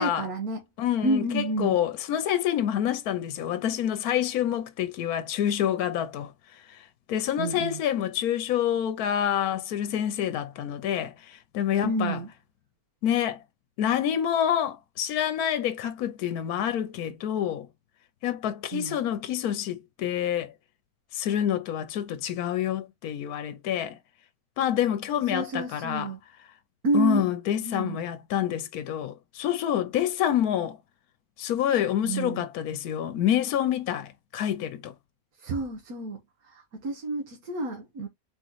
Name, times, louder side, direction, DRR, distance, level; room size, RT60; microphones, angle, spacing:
voice 1, 0.0-0.6 1.0-1.8 7.4-7.8 11.8-12.3 18.7-19.0 25.3-26.2 26.8-27.2 27.6-28.0 32.0-32.4 35.4-38.1, right 2 dB, 70° right, 1.5 m, -29 dB
voice 2, 0.8-6.3 6.7-6.8 7.1-12.2 13.0-13.4 13.8-17.7 18.2-20.5 21.1-24.0 24.6-26.1 26.9-30.8 31.4-34.9, left 10 dB, 75° left, 1.2 m, -27 dB
4.1 x 3.1 x 3.8 m
omnidirectional pair, 1.6 m